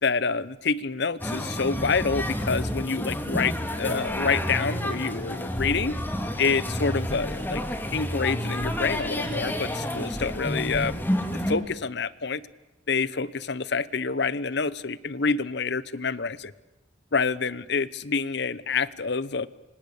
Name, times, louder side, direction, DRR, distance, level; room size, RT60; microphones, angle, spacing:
voice 1, 0.0-6.0 6.4-7.6 7.9-11.0 11.5-12.5 12.9-16.5 17.1-19.5, left 5 dB, 65° left, 18 dB, 0.9 m, -27 dB
sound 1, 1.2-11.5, equal, 10° left, 2.7 m, -30 dB
27.0 x 25.5 x 8.5 m, 1.0 s
head